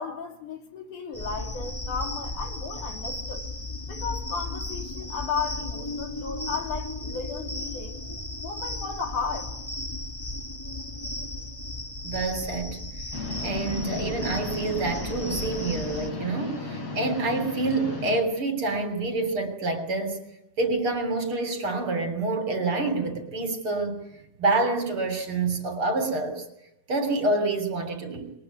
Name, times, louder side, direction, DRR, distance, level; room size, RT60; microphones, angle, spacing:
voice 1, 0.0-3.5 3.9-8.0 8.4-9.5, left 5 dB, 70° left, 3 dB, 4.5 m, -34 dB
sound 1, 1.1-16.1, left 1 dB, 15° left, 1.0 m, -35 dB
voice 2, 12.0-12.8 13.4-20.2 20.6-24.0 24.4-26.5 26.9-28.3, right 3 dB, 40° right, 7 dB, 3.8 m, -27 dB
sound 2, 13.1-18.2, left 3 dB, 45° left, 5.0 m, -35 dB
28.0 x 22.0 x 9.4 m, 0.85 s
omnidirectional pair, 3.8 m